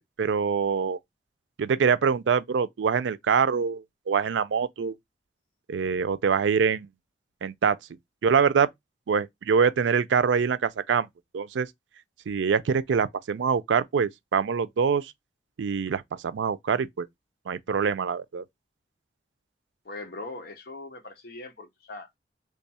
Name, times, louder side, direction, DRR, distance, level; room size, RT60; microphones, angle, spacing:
voice 1, 0.2-1.0 1.6-5.0 5.7-6.9 7.4-7.8 8.2-8.7 9.1-11.1 11.3-11.7 12.3-15.1 15.6-17.1 17.5-18.4, right 6 dB, 90° right, 0.4 m, -24 dB
voice 2, 19.8-22.2, left 2 dB, 55° left, 0.8 m, -40 dB
3.2 x 2.3 x 4.1 m
head